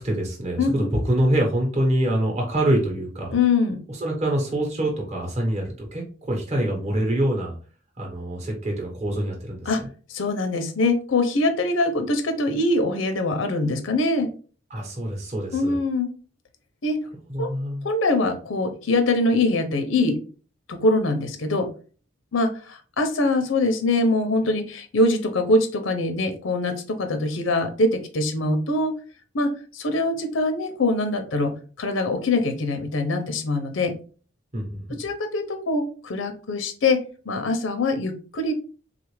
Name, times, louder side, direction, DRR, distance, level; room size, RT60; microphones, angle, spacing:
voice 1, 0.0-3.3 3.9-7.6 8.0-9.9 14.7-15.8 17.3-17.9 34.5-35.0, right 1 dB, 35° right, 1 dB, 0.9 m, -25 dB
voice 2, 0.6-0.9 3.3-3.8 9.7-9.8 10.1-14.3 15.5-16.1 16.8-17.0 17.4-17.5 17.8-20.2 20.7-21.7 22.3-28.9 29.3-33.9 35.0-38.5, left 2 dB, 80° left, 7 dB, 0.6 m, -23 dB
3.6 x 2.4 x 3.1 m, 0.39 s
head